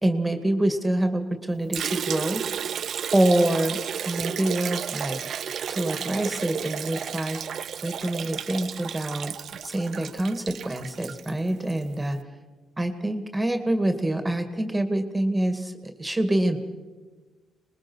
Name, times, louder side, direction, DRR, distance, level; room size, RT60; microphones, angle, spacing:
voice 1, 0.0-2.4 3.1-3.8 4.0-5.3 5.7-7.4 7.8-9.3 9.6-12.2 12.8-16.6, right 1 dB, 10° right, 7 dB, 2.2 m, -26 dB
Liquid, 1.7-11.8, right 8 dB, 60° right, 0.6 m, -33 dB
25.5 x 20.5 x 6.3 m, 1.3 s
cardioid pair, 90°, 0 cm